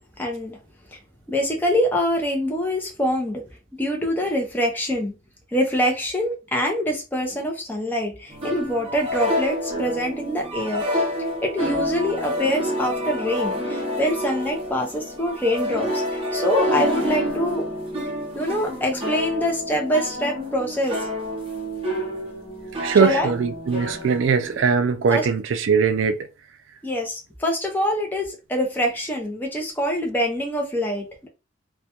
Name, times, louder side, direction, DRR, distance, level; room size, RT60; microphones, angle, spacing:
voice 1, 0.2-0.6 0.9-1.0 1.3-3.4 3.8-5.1 5.5-10.9 11.4-17.7 18.3-21.0 23.0-23.3 25.1-25.3 26.8-31.3, equal, 10° left, 0.5 m, -25 dB
sound 1, 8.3-24.7, equal, 30° right, 0.7 m, -28 dB
voice 2, 22.8-26.2, right 5 dB, 75° right, 0.4 m, -20 dB
2.2 x 2.2 x 2.7 m
head